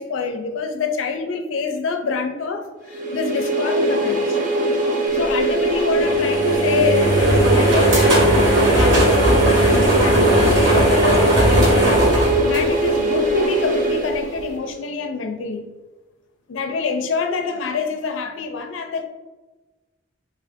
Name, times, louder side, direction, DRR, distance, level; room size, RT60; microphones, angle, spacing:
voice 1, 0.0-4.4 5.1-8.3 8.7-15.7 16.5-19.0, left 4 dB, 85° left, 5 dB, 0.4 m, -26 dB
sound 1, 2.9-14.7, right 1 dB, 45° right, 0.7 m, -21 dB
sound 2, 6.0-13.3, right 1 dB, 80° right, 1.4 m, -18 dB
3.6 x 2.4 x 3.4 m, 1.2 s
head